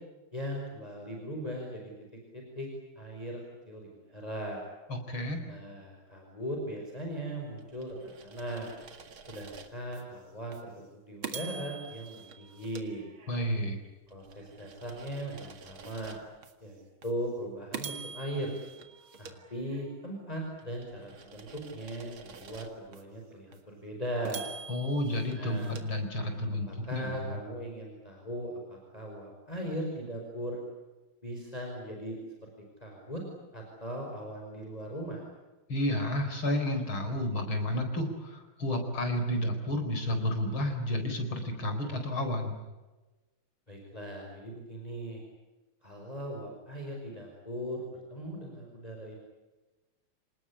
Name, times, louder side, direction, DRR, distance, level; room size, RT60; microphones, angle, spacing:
voice 1, 0.3-1.9 2.3-2.7 3.0-4.6 5.5-8.7 9.3-13.0 14.1-16.2 16.6-18.6 19.2-24.4 25.4-25.8 26.7-30.6 31.2-32.5 32.8-33.2 33.5-35.2 43.7-45.2 45.8-49.2, right 1 dB, 15° left, 0 dB, 5.2 m, -39 dB
voice 2, 4.9-5.4 13.3-13.8 24.7-27.4 35.7-42.6, left 1 dB, 75° left, 6 dB, 5.1 m, -31 dB
sound 1, 7.6-10.0 10.5-10.7 11.2-13.6 14.1-16.5 17.0-17.2 17.7-20.1 20.6-23.0 23.5-23.6 24.2-26.6, right 6 dB, 75° right, 2.8 m, -46 dB
28.0 x 19.5 x 9.9 m, 1.2 s
omnidirectional pair, 2.3 m